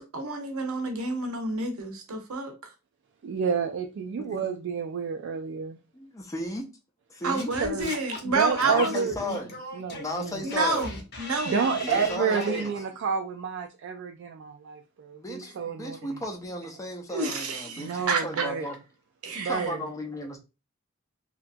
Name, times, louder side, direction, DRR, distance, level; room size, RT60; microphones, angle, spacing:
voice 1, 0.0-2.5 7.2-8.9 10.4-11.6 11.9-12.0 17.1-18.5 19.2-19.6, right 3 dB, 90° right, 0.7 m, -29 dB
voice 2, 3.2-5.8 7.6-7.9 8.2-9.4 9.7-10.4 11.5-16.2 17.8-18.7 19.4-19.9, right 6 dB, 60° right, 0.3 m, -30 dB
voice 3, 5.9-6.7 7.1-7.5 8.6-9.5 10.0-10.9 11.9-12.7 15.1-18.8 19.3-20.4, left 1 dB, 15° left, 0.4 m, -35 dB
Singing / Scratching (performance technique), 7.4-12.7, left 2 dB, 50° left, 0.7 m, -39 dB
2.8 x 2.3 x 2.5 m
head